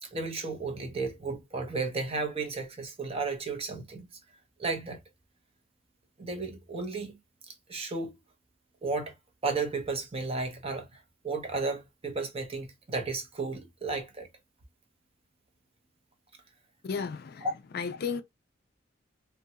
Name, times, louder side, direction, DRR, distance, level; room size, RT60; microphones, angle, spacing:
voice 1, 0.0-4.1 4.6-5.0 6.2-7.2 7.5-8.1 8.8-9.1 9.4-14.3, right 4 dB, 30° right, 0.6 m, -33 dB
voice 2, 16.8-17.5 17.7-18.2, left 5 dB, 50° left, 0.4 m, -33 dB
2.6 x 2.2 x 2.6 m
head